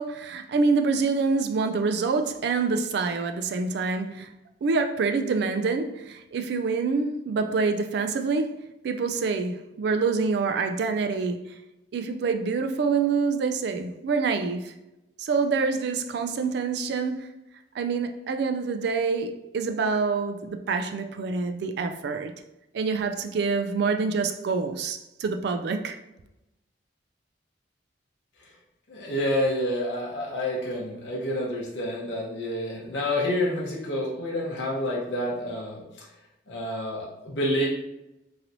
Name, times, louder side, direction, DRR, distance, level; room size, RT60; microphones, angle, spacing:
voice 1, 0.0-4.3 4.6-11.5 11.9-14.7 15.2-17.3 17.7-22.3 22.7-26.0, right 4 dB, 65° right, 0.3 m, -26 dB
voice 2, 28.9-35.8 36.5-37.7, left 1 dB, 75° left, 0.8 m, -28 dB
3.2 x 2.8 x 2.6 m
head